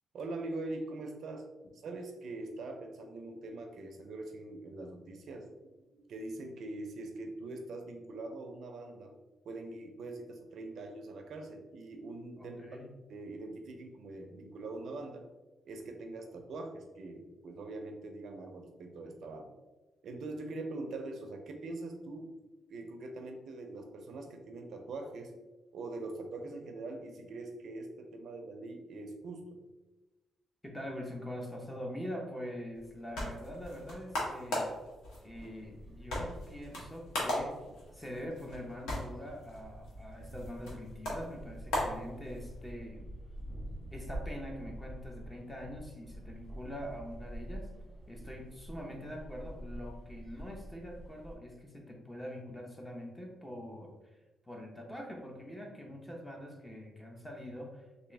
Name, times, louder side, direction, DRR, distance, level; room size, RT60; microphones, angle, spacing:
voice 1, 0.1-1.5 1.8-5.5 5.8-9.1 9.4-12.6 13.1-15.3 15.7-19.5 20.0-22.3 22.7-25.3 25.7-29.6 48.1-48.3, right 2 dB, 70° right, 5 dB, 0.5 m, -43 dB
voice 2, 12.4-12.9 30.6-34.7 35.2-37.6 37.9-43.1 43.9-47.7 48.1-53.9 54.5-58.1, equal, 10° left, 1 dB, 0.8 m, -44 dB
sound 1, 32.7-42.7, left 1 dB, 85° left, 1.2 m, -39 dB
sound 2, 35.3-51.4, right 1 dB, 5° right, 1.4 m, -47 dB
3.5 x 2.6 x 3.2 m, 1.1 s
cardioid pair, 90°, 0 cm